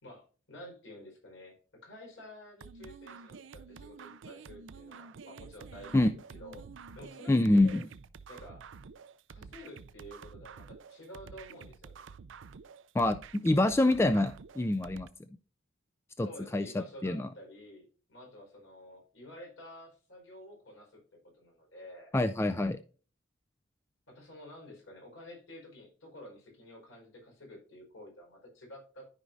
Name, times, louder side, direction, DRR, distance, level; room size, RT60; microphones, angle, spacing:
voice 1, 0.0-6.1 6.3-6.6 6.9-7.8 8.3-8.6 9.3-12.0 16.2-21.0 21.3-22.1 24.1-29.1, left 1 dB, 75° left, -1 dB, 4.8 m, -50 dB
sound 1, 2.6-15.1, right 5 dB, 75° right, 0.5 m, -50 dB
voice 2, 7.3-7.8 12.9-15.1 16.2-17.3 22.1-22.8, left 1 dB, 15° left, 10 dB, 0.3 m, -26 dB
13.0 x 5.1 x 2.6 m, 0.38 s
head